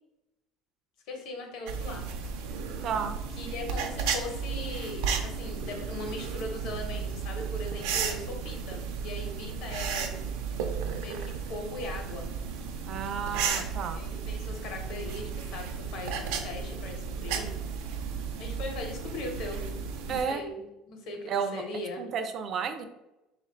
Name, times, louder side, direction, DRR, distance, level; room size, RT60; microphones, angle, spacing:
voice 1, 1.1-2.0 3.4-10.1 10.9-12.3 13.9-17.5 18.4-19.6 20.0-22.0, left 2 dB, 60° left, 2 dB, 0.9 m, -39 dB
sound 1, 1.7-20.2, right 6 dB, 90° right, 0.5 m, -34 dB
voice 2, 2.8-3.1 12.9-14.0 20.1-20.4 21.3-21.6 22.0-22.9, right 6 dB, 35° right, 9 dB, 0.3 m, -32 dB
3.6 x 2.4 x 4.3 m, 0.98 s
cardioid pair, 175°, 0 cm